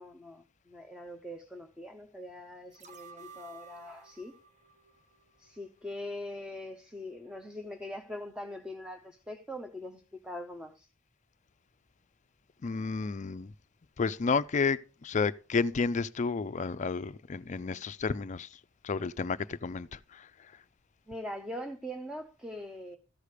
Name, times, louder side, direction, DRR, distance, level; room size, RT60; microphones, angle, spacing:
voice 1, 0.0-4.4 5.4-10.9 21.1-23.0, left 1 dB, 5° right, 0.7 m, -42 dB
sound 1, 2.7-5.8 6.2-6.3, right 5 dB, 35° right, 1.4 m, -54 dB
voice 2, 12.6-13.5 14.0-18.5 18.8-20.3, left 4 dB, 35° left, 0.4 m, -31 dB
14.0 x 4.9 x 6.6 m
head